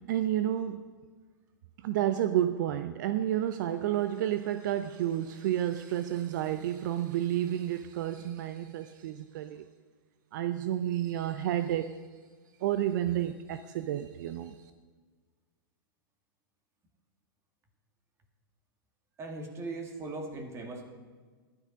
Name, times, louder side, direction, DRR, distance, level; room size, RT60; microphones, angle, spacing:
voice 1, 0.1-0.9 1.8-9.6 10.3-12.0 12.6-14.6, right 12 dB, 60° right, 11 dB, 0.5 m, -30 dB
voice 2, 19.2-20.8, right 2 dB, 25° right, 4 dB, 2.0 m, -39 dB
12.5 x 11.0 x 5.1 m, 1.5 s
hypercardioid pair, 120°, 11 cm